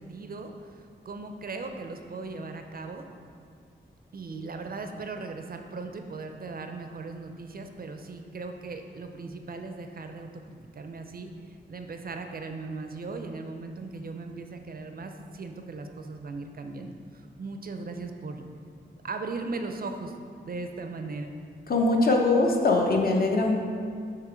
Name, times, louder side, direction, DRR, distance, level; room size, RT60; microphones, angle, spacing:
voice 1, 0.0-3.1 4.1-18.5 19.0-20.1 20.4-21.3, right 3 dB, 50° right, 5 dB, 0.4 m, -38 dB
voice 2, 21.7-23.6, left 2 dB, 50° left, 0 dB, 0.7 m, -22 dB
6.7 x 2.9 x 4.9 m, 2.2 s
wide cardioid pair, 120°, 19 cm